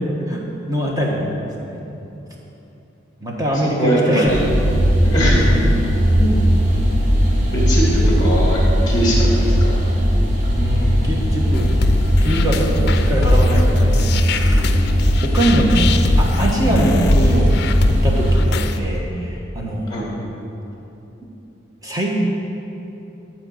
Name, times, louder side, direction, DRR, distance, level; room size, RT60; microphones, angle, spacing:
voice 1, 0.3-1.8 3.2-4.4 10.6-11.7 12.2-14.9 15.2-17.6 17.9-20.0 21.8-22.1, right 1 dB, 20° right, -2 dB, 1.4 m, -22 dB
voice 2, 3.5-4.4 5.0-5.6 6.2-6.4 7.5-8.6 8.9-9.7 19.9-20.1, right 1 dB, 20° left, -5 dB, 2.8 m, -21 dB
sound 1, 4.3-18.4, equal, 35° right, 1.6 m, -17 dB
sound 2, 11.5-18.8, left 3 dB, 55° left, 0.5 m, -24 dB
13.0 x 4.5 x 7.9 m, 3.0 s
head